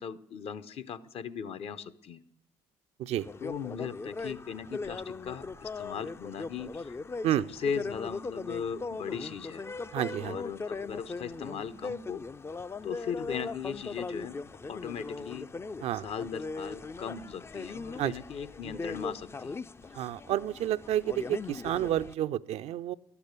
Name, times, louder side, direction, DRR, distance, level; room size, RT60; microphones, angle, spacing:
voice 1, 0.0-2.2 3.4-7.0 7.6-9.6 10.2-12.2 12.8-15.5 16.0-19.5, left 7 dB, 55° left, 14 dB, 0.7 m, -38 dB
sound 1, 3.2-22.1, left 3 dB, 20° left, 0.4 m, -39 dB
voice 2, 9.9-10.4 15.8-16.1 18.0-18.2 19.9-22.9, right 12 dB, 65° right, 13 dB, 0.4 m, -30 dB
11.5 x 6.9 x 8.1 m, 0.74 s
hypercardioid pair, 60°, 12 cm